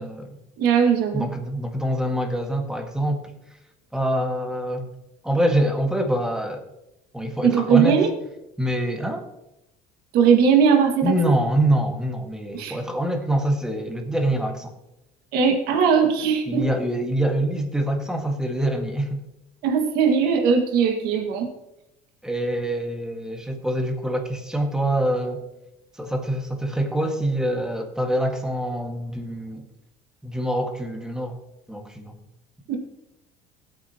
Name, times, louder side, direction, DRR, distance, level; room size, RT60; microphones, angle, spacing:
voice 1, 0.0-0.4 1.1-3.2 3.9-4.9 5.2-6.6 7.1-8.1 8.6-9.2 11.0-14.7 16.5-19.2 22.2-25.5 26.0-29.7 30.2-31.4 31.7-32.2, right 1 dB, 5° right, 3 dB, 1.8 m, -25 dB
voice 2, 0.6-1.3 7.4-8.1 10.1-11.4 12.5-12.8 15.3-16.6 19.6-21.5 32.7-32.8, right 6 dB, 65° right, 3 dB, 2.0 m, -19 dB
17.5 x 8.9 x 3.0 m, 0.89 s
cardioid pair, 125°, 17 cm